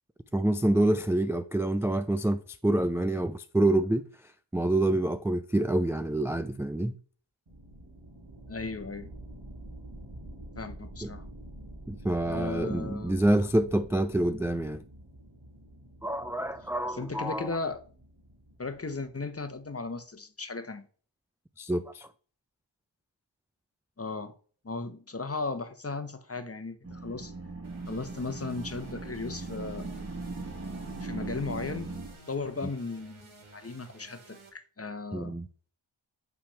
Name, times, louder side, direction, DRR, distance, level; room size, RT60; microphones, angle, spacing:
voice 1, 0.3-7.0 11.0-11.1 11.9-14.8 16.0-17.6 21.6-22.1 35.1-35.5, right 1 dB, 5° right, 0.3 m, -27 dB
sound 1, 7.5-19.7, right 1 dB, 65° right, 3.9 m, -48 dB
voice 2, 8.5-9.1 10.6-11.3 12.2-13.1 16.9-17.8 18.6-20.9 24.0-24.3 24.6-27.3 27.9-29.9 31.0-31.9 32.3-35.4, left 3 dB, 30° left, 1.0 m, -36 dB
sound 2, 26.8-32.1, right 3 dB, 30° right, 1.6 m, -39 dB
sound 3, 27.6-34.5, right 3 dB, 80° right, 2.1 m, -54 dB
8.9 x 3.6 x 5.6 m
wide cardioid pair, 95°, 48 cm